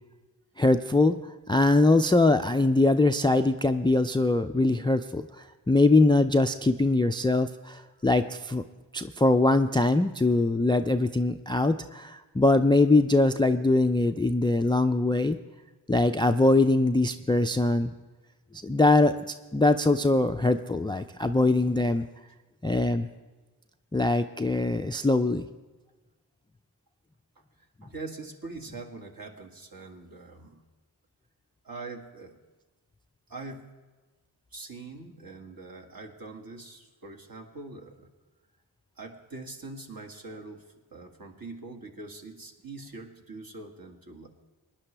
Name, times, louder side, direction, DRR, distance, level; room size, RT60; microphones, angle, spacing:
voice 1, 0.6-1.2 1.5-5.3 5.7-8.6 8.9-15.4 15.9-17.9 18.6-19.3 19.5-22.1 22.6-23.1 23.9-25.5, left 2 dB, 10° left, 10 dB, 0.4 m, -22 dB
voice 2, 27.4-30.6 31.6-32.4 33.3-33.8 34.5-38.1 39.0-44.3, right 3 dB, 50° right, 2 dB, 2.0 m, -43 dB
19.0 x 10.5 x 3.3 m, 1.2 s
supercardioid pair, 40°, 46 cm